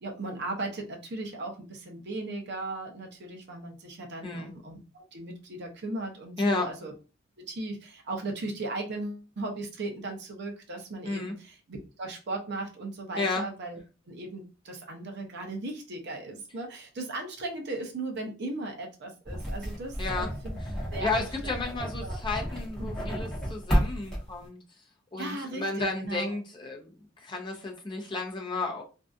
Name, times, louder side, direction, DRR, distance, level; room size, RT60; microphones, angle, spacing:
voice 1, 0.0-6.9 7.4-13.8 14.1-20.5 20.9-21.6 22.0-22.2 22.8-23.2 25.2-26.4, right 2 dB, 55° right, 2 dB, 0.6 m, -37 dB
sound 1, 19.3-24.5, equal, 5° left, 1.0 m, -32 dB
voice 2, 20.0-20.3 21.0-24.6 25.1-26.9 27.2-28.8, left 3 dB, 25° left, 0 dB, 0.6 m, -32 dB
2.6 x 2.3 x 2.3 m, 0.33 s
head